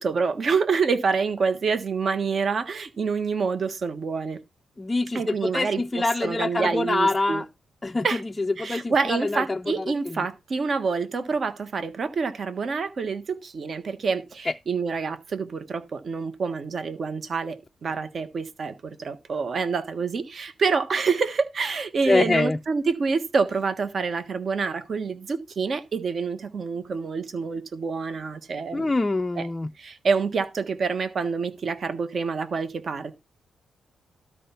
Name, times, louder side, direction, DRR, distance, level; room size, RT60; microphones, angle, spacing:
voice 1, 0.0-4.4 5.1-7.4 8.0-8.2 8.6-29.0 29.3-29.5 29.8-33.2, right 5 dB, 55° right, 1.4 m, -27 dB
voice 2, 4.8-7.4 7.8-8.0 8.6-9.6 22.1-22.6 28.7-29.7, left 2 dB, 20° left, 0.4 m, -25 dB
13.0 x 4.7 x 5.7 m
cardioid pair, 75°, 0 cm